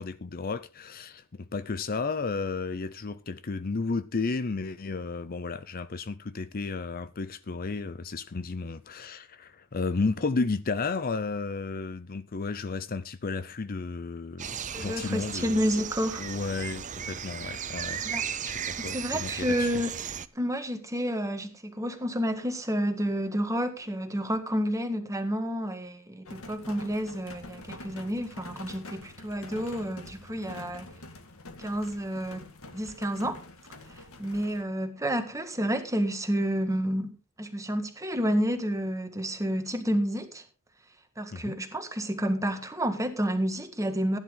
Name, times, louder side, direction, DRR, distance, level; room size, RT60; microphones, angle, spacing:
voice 1, 0.0-14.5 14.8-15.5 16.2-18.0 18.4-19.7 41.3-41.6, left 4 dB, 40° left, 0.6 m, -33 dB
sound 1, 14.4-20.3, right 8 dB, 35° right, 0.6 m, -36 dB
voice 2, 14.7-16.2 18.0-18.2 18.8-19.9 20.4-30.9 31.6-32.5 32.7-33.4 33.9-40.4 41.2-44.2, equal, 15° right, 1.7 m, -30 dB
sound 2, 26.3-34.6, left 2 dB, 65° left, 2.0 m, -46 dB
15.5 x 10.5 x 3.9 m
head